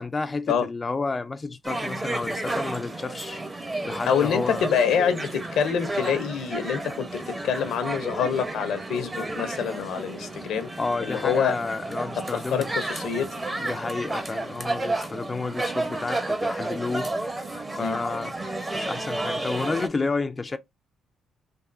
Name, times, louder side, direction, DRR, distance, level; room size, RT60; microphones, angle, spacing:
voice 1, 0.0-3.4 3.8-4.6 10.8-12.7 13.7-17.4 17.7-18.3 18.7-20.6, left 3 dB, 25° left, 0.3 m, -30 dB
sound 1, 1.6-19.9, right 2 dB, 20° right, 0.7 m, -32 dB
voice 2, 4.1-10.7 11.0-11.6 12.3-13.3 17.8-18.0, left 7 dB, 80° left, 0.7 m, -26 dB
3.5 x 2.6 x 2.4 m
cardioid pair, 90°, 0 cm